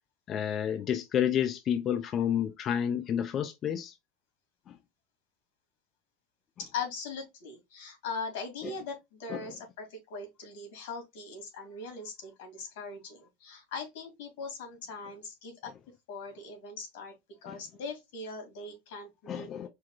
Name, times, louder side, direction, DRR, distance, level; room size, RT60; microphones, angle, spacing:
voice 1, 0.3-3.9 4.7-4.8 8.6-8.7 9.3-9.5 17.5-17.6 19.3-19.7, left 9 dB, 25° left, 0.4 m, -30 dB
voice 2, 6.6-15.7 16.1-17.1 17.4-19.7, left 4 dB, 85° left, 2.4 m, -40 dB
4.6 x 2.4 x 3.8 m
cardioid pair, 175°, 0 cm